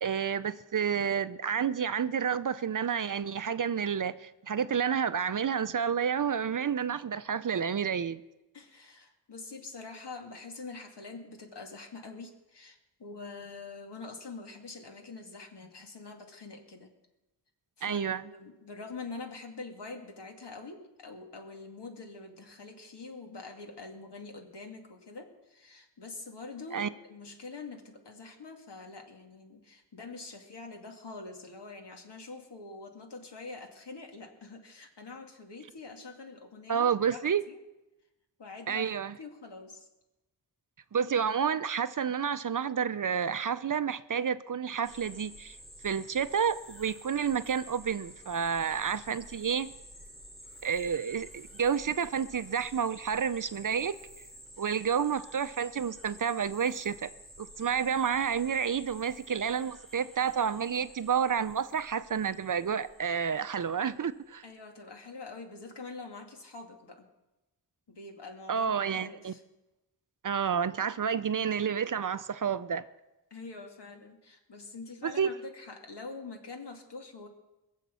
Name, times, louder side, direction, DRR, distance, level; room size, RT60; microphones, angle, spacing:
voice 1, 0.0-8.2 17.8-18.2 26.7-26.9 36.7-37.4 38.7-39.1 40.9-45.6 45.8-49.7 50.6-54.0 54.6-57.1 57.4-64.4 68.5-69.3 70.2-72.8 75.0-75.3, right 7 dB, 50° right, 0.6 m, -30 dB
voice 2, 8.5-16.9 17.8-18.0 18.3-37.2 37.5-37.6 38.4-38.9 39.2-39.9 64.4-67.1 67.9-69.4 73.3-77.3, left 3 dB, 70° left, 2.3 m, -45 dB
sound 1, 44.8-63.9, equal, ahead, 2.9 m, -51 dB
21.5 x 7.4 x 6.9 m
wide cardioid pair, 75°, 43 cm